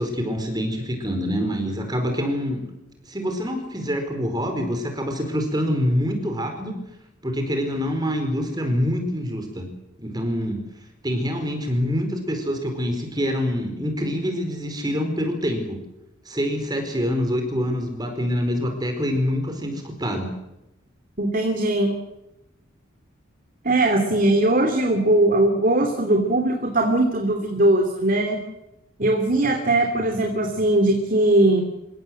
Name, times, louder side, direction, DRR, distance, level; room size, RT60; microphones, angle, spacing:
voice 1, 0.0-2.6 3.0-6.8 7.2-9.7 10.0-10.6 11.0-15.8 16.3-20.3, equal, 20° right, 5 dB, 4.5 m, -25 dB
voice 2, 21.2-21.9 23.6-28.4 29.0-31.6, right 1 dB, 40° right, 3 dB, 3.1 m, -20 dB
28.5 x 17.0 x 7.8 m, 0.91 s
head